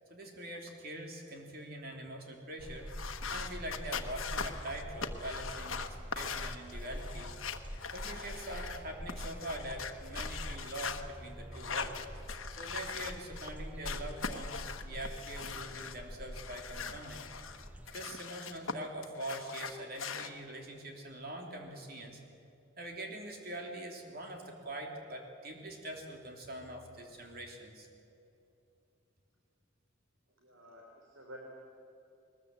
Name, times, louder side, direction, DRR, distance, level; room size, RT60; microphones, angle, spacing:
voice 1, 0.1-2.9 3.3-7.3 7.9-12.3 12.6-17.3 17.9-22.2 22.8-27.9, right 1 dB, 45° right, 2 dB, 3.3 m, -43 dB
sound 1, 2.6-18.1, equal, 5° right, 0.6 m, -45 dB
sound 2, 2.9-8.8 9.1-11.0 11.5-13.5 13.8-16.0 16.3-18.7 19.0-20.3, left 5 dB, 75° left, 1.2 m, -41 dB
voice 2, 30.4-31.4, equal, 70° right, -1 dB, 3.4 m, -51 dB
21.0 x 20.0 x 8.0 m, 2.7 s
head